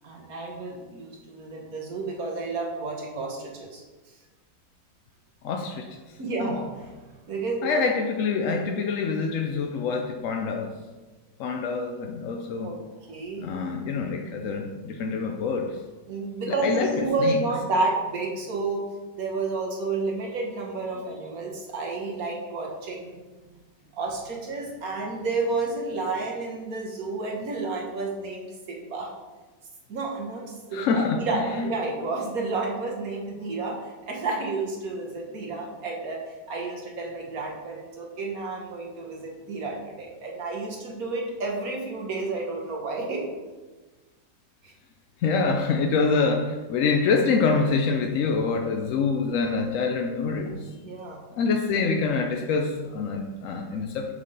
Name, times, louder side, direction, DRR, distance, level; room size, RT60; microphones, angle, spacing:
voice 1, 0.0-3.8 6.2-6.9 7.2-7.7 12.6-12.8 13.1-13.5 16.1-18.8 19.2-23.3 23.9-29.1 29.9-43.3 44.6-44.7 50.7-51.2, right 3 dB, 55° right, -1 dB, 1.5 m, -31 dB
voice 2, 5.4-5.9 6.4-6.6 7.6-10.7 11.4-12.7 13.4-15.8 16.5-17.4 30.7-31.7 45.2-50.6 51.3-54.1, left 4 dB, 70° left, 3 dB, 0.7 m, -26 dB
6.3 x 5.6 x 3.9 m, 1.3 s
omnidirectional pair, 1.9 m